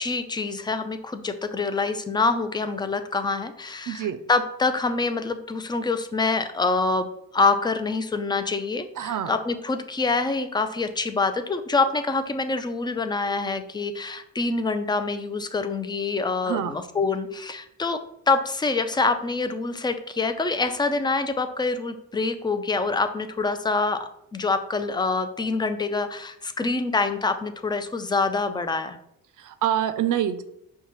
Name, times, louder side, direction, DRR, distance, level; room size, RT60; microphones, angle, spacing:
voice 1, 0.0-18.0 18.3-29.0, left 3 dB, 15° left, 9 dB, 0.3 m, -26 dB
voice 2, 3.9-4.2 9.0-9.3 16.4-16.7 29.4-30.4, right 11 dB, 55° right, 11 dB, 0.5 m, -26 dB
5.5 x 2.2 x 3.0 m, 0.76 s
cardioid pair, 65°, 38 cm